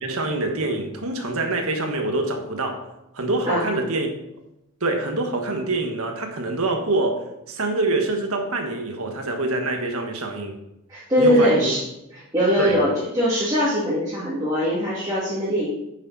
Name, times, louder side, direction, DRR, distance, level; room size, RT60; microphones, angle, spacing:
voice 1, 0.0-2.9 3.1-4.1 4.8-10.6 11.2-11.7 12.6-12.8, right 2 dB, 80° right, 1.5 m, -25 dB
voice 2, 10.9-11.8 12.3-15.7, equal, 15° right, 2.5 m, -21 dB
9.3 x 7.1 x 4.2 m
head